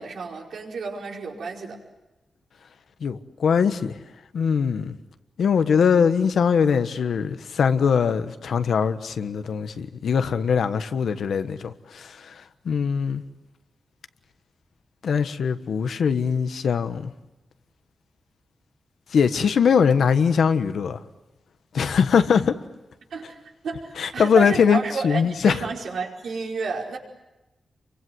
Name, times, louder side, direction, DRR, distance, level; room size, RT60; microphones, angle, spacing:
voice 1, 0.0-1.8 23.1-27.0, right 4 dB, 85° right, 5.0 m, -31 dB
voice 2, 3.0-3.9 4.3-5.0 5.4-12.3 12.6-13.2 15.0-17.1 19.1-21.0 21.7-22.6 24.0-25.6, left 6 dB, 80° left, 1.3 m, -21 dB
29.0 x 24.5 x 7.8 m
wide cardioid pair, 130°, 0 cm